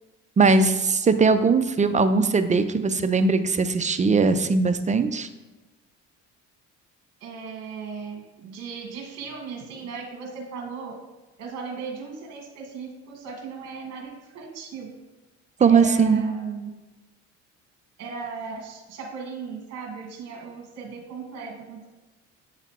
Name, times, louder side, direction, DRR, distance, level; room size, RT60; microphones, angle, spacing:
voice 1, 0.4-5.3 15.6-16.2, right 4 dB, 25° right, 10 dB, 0.5 m, -20 dB
voice 2, 7.2-10.9 11.4-14.9 15.6-16.7 18.0-21.9, right 5 dB, 60° right, 0 dB, 1.4 m, -37 dB
8.1 x 4.0 x 4.3 m, 1.2 s
cardioid pair, 95°, 30 cm